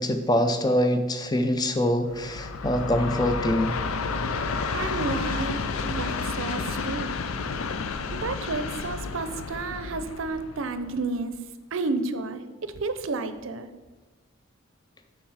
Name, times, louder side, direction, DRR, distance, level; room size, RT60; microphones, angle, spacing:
voice 1, 0.0-3.7, equal, 20° left, 8 dB, 0.5 m, -24 dB
Train, 2.1-11.3, left 4 dB, 80° left, 0.5 m, -31 dB
voice 2, 4.7-7.2 8.2-11.3 11.7-13.7, right 3 dB, 70° right, 10 dB, 0.6 m, -31 dB
7.1 x 6.4 x 4.7 m, 1.2 s
head